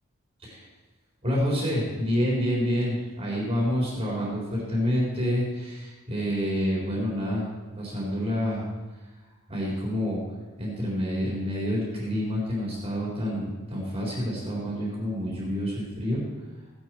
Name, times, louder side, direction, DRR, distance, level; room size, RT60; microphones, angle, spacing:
voice 1, 1.2-7.5 7.8-8.6 9.5-10.2 10.6-16.2, equal, 25° right, -5 dB, 4.0 m, -28 dB
17.0 x 10.5 x 4.6 m, 1.3 s
head